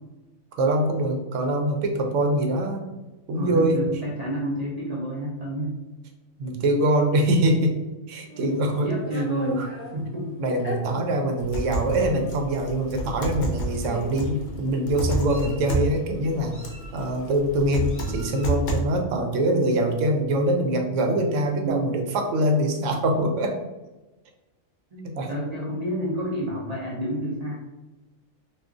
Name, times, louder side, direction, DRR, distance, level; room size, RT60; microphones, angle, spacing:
voice 1, 0.6-2.8 3.3-3.8 6.4-7.7 8.1-8.9 9.5-9.7 10.4-16.5 16.9-23.6 25.0-25.3, right 1 dB, 85° right, 3 dB, 0.9 m, -24 dB
voice 2, 3.3-5.7 8.8-9.6 9.9-10.3 21.6-22.0 24.9-27.5, right 1 dB, 45° right, -4 dB, 0.5 m, -29 dB
Meow, 8.3-9.9 10.6-10.8 11.6-11.8 12.1-12.3 13.4-13.5 13.8-14.4 15.0-15.7 16.5-17.3 17.9-18.6, left 1 dB, 15° left, 0.5 m, -38 dB
sound 1, 11.4-18.8, right 2 dB, 55° left, 0.6 m, -30 dB
2.4 x 2.4 x 3.6 m, 1.1 s
omnidirectional pair, 1.3 m